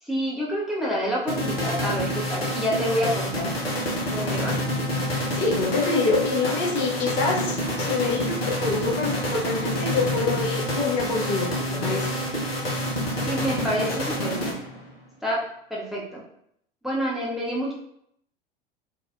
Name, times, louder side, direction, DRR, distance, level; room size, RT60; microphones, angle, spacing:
voice 1, 0.0-3.5 4.1-4.6 13.2-14.6 15.2-15.4 15.7-16.2 16.8-17.7, equal, ahead, -5 dB, 0.7 m, -28 dB
sound 1, 1.3-14.9, equal, 80° left, 0.8 m, -28 dB
voice 2, 5.3-12.1, left 4 dB, 35° left, -2 dB, 0.6 m, -26 dB
3.3 x 2.4 x 2.5 m, 0.72 s
figure-of-eight pair, 80°, 29 cm